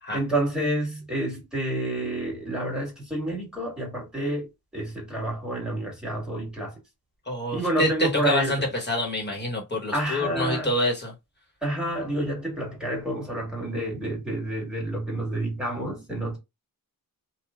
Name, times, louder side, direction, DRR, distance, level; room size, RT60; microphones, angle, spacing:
voice 1, 0.1-4.5 4.7-6.7 7.5-8.7 9.9-10.7 11.6-16.4, right 1 dB, ahead, 1.9 m, -29 dB
voice 2, 7.3-11.1, left 1 dB, 30° left, 1.5 m, -26 dB
3.1 x 2.6 x 2.3 m
wide cardioid pair, 125°, 37 cm